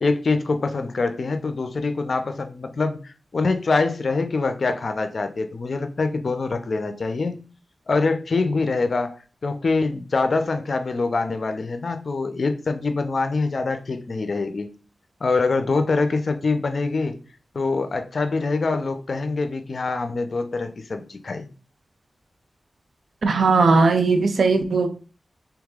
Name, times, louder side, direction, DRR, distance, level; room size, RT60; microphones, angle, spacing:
voice 1, 0.0-7.3 7.9-14.7 15.2-17.2 17.5-21.5, left 3 dB, 70° left, 8 dB, 0.6 m, -24 dB
voice 2, 23.2-24.9, right 4 dB, 85° right, 8 dB, 0.5 m, -18 dB
3.6 x 3.0 x 3.6 m, 0.36 s
cardioid pair, 50°, 0 cm